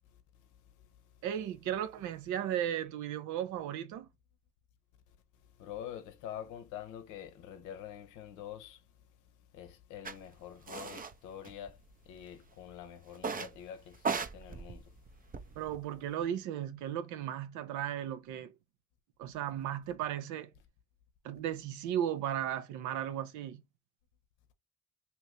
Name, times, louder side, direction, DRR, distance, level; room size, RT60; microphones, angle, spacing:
voice 1, 1.2-4.1 15.6-18.5 19.2-20.5 21.2-23.6, right 10 dB, 80° right, 0.5 m, -35 dB
voice 2, 5.6-8.8 9.5-11.8 12.1-14.9, left 10 dB, 85° left, 0.6 m, -46 dB
sound 1, 10.0-10.2 10.7-11.1 11.4-12.2 13.2-13.6 13.9-15.8, right 5 dB, 30° right, 0.5 m, -37 dB
2.9 x 2.6 x 3.1 m
hypercardioid pair, 45°, 30 cm